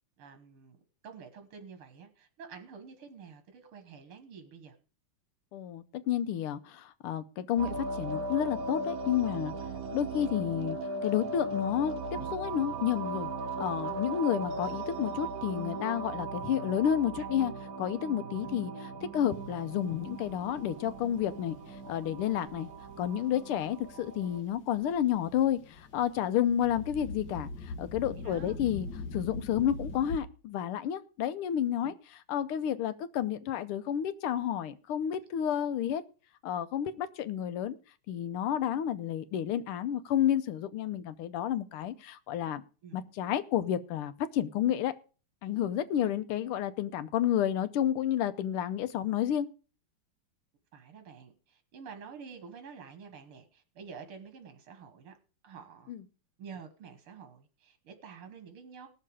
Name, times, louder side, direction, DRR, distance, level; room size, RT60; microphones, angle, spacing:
voice 1, 0.2-4.8 18.4-18.5 28.2-28.6 31.8-31.9 42.8-43.0 46.0-46.1 50.7-55.2 55.4-55.9 56.4-58.9, right 6 dB, 80° right, 8 dB, 2.3 m, -49 dB
voice 2, 5.5-9.5 9.9-10.8 11.0-13.3 13.6-17.5 17.8-22.7 23.0-28.9 29.1-36.0 36.4-37.8 38.1-42.6 42.9-44.9 45.4-49.5 55.9-56.0, left 10 dB, 85° left, 12 dB, 1.7 m, -31 dB
sound 1, 7.6-24.4, right 2 dB, 50° right, 1.3 m, -38 dB
sound 2, 19.3-30.2, left 3 dB, 60° left, 1.9 m, -44 dB
18.0 x 6.7 x 4.8 m, 0.36 s
omnidirectional pair, 2.4 m